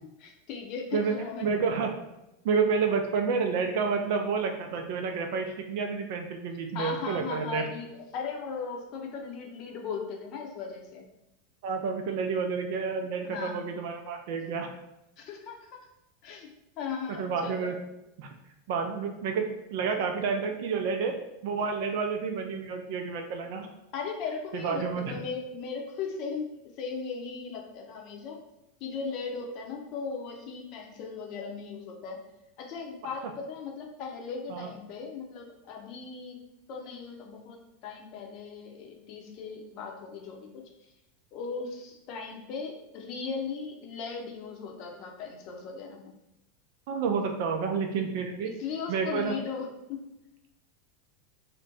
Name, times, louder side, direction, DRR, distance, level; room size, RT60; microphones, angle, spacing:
voice 1, 0.2-1.5 6.7-7.9 8.1-11.0 13.2-13.6 15.2-15.8 16.2-17.7 23.9-26.5 26.8-28.4 28.8-32.2 32.6-36.4 36.7-40.7 41.3-46.1 48.4-50.0, left 5 dB, 50° left, 1 dB, 0.6 m, -37 dB
voice 2, 0.9-1.9 2.4-7.7 11.6-14.7 17.2-17.8 18.2-18.3 18.7-21.1 21.4-23.7 24.5-25.1 34.5-34.7 46.9-48.5 48.9-49.4, right 5 dB, 60° right, 4 dB, 0.4 m, -29 dB
2.5 x 2.1 x 3.9 m, 0.91 s
hypercardioid pair, 90°, 0 cm